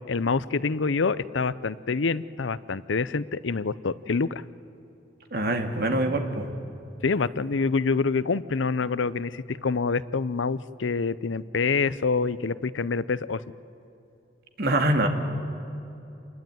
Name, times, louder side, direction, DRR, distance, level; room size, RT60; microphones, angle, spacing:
voice 1, 0.1-4.4 7.0-13.4, left 4 dB, 75° left, 17 dB, 0.6 m, -26 dB
voice 2, 5.3-6.5 14.6-15.1, right 1 dB, 55° right, 5 dB, 2.4 m, -24 dB
28.0 x 21.0 x 9.2 m, 2.9 s
head